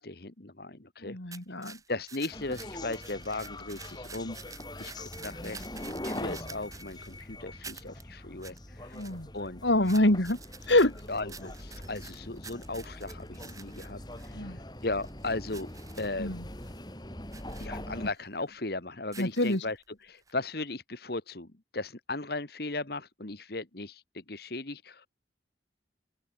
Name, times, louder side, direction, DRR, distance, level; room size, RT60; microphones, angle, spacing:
voice 1, 0.0-1.2 1.9-4.4 4.8-9.0 9.3-9.6 11.1-15.7 16.0-16.5 17.6-19.8 20.0-21.5 21.7-25.1, left 2 dB, 55° left, 1.7 m, -37 dB
voice 2, 1.0-1.8 8.9-9.3 9.6-10.4 10.7-11.0 14.3-14.6 16.2-16.5 19.2-19.6, left 1 dB, 70° left, 3.5 m, -26 dB
sound 1, 1.3-7.2 7.6-8.0 8.4-8.6 8.9-9.5 9.8-14.3 14.8-16.1 16.5-16.8 17.3-17.7 18.2-18.3 19.0-19.8 20.3-20.4, right 5 dB, 20° right, 4.3 m, -49 dB
sound 2, 2.3-18.1, left 1 dB, 20° left, 3.8 m, -43 dB
open air
head